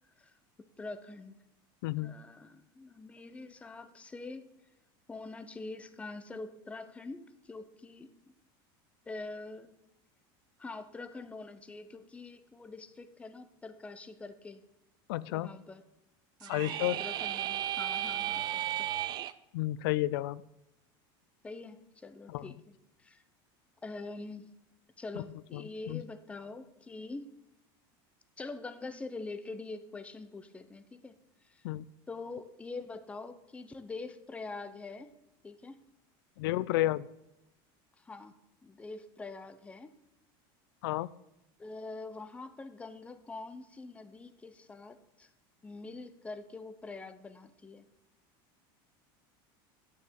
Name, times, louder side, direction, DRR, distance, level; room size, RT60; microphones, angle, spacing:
voice 1, 0.2-1.4 2.0-4.5 5.1-8.1 9.1-9.8 10.6-14.6 15.3-15.8 16.4-16.7 17.0-18.9 21.4-23.2 23.8-24.5 25.0-27.4 28.4-31.2 31.4-31.7 32.1-35.1 35.4-35.8 38.0-38.3 38.6-39.9 41.6-45.3 45.6-47.9, left 3 dB, 10° left, 11 dB, 0.6 m, -44 dB
voice 2, 1.8-2.2 15.1-15.5 16.5-17.0 19.5-20.4 22.3-22.5 25.5-26.0 31.6-31.9 36.4-37.1 40.8-41.1, left 16 dB, 80° left, 19 dB, 0.4 m, -31 dB
sound 1, 16.4-19.3, right 12 dB, 35° right, 0.4 m, -34 dB
8.8 x 6.6 x 7.5 m, 0.90 s
supercardioid pair, 145°, 12 cm